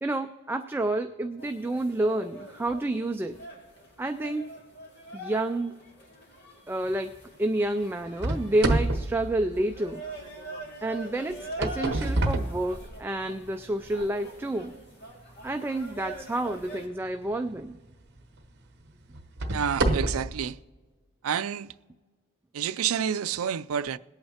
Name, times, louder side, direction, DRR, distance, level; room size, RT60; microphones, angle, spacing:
voice 1, 0.0-3.4 4.0-4.5 5.1-5.7 6.7-10.0 10.8-14.8 15.4-17.8, right 1 dB, 10° right, 0.3 m, -29 dB
sound 1, 1.4-16.9, right 1 dB, 50° left, 2.2 m, -44 dB
sound 2, 8.2-10.2 11.3-13.3 13.9-14.0 14.7-14.8 17.4-17.6 18.2-18.3 19.1-20.4, right 2 dB, 50° right, 1.0 m, -28 dB
voice 2, 19.5-20.6 21.2-21.7 22.5-24.0, right 8 dB, 75° right, 0.4 m, -29 dB
21.5 x 8.7 x 2.9 m
head